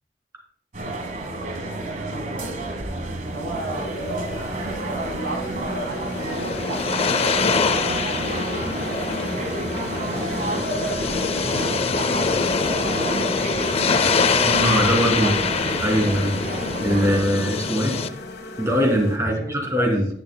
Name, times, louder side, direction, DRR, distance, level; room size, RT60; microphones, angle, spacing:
sound 1, 0.7-17.2, right 1 dB, 45° right, 1.3 m, -31 dB
voice 1, 1.2-2.7 3.2-7.2 7.7-10.6 11.5-13.3 14.2-16.2 19.2-19.9, right 1 dB, 90° right, 4 dB, 1.9 m, -35 dB
sound 2, 3.0-19.2, left 1 dB, 65° left, 1.4 m, -35 dB
sound 3, 5.8-18.1, left 5 dB, 35° left, 0.4 m, -24 dB
voice 2, 14.4-15.3 15.8-16.3 16.8-18.0 18.6-20.1, equal, 15° right, -1 dB, 2.7 m, -21 dB
10.5 x 10.5 x 2.2 m, 0.67 s
head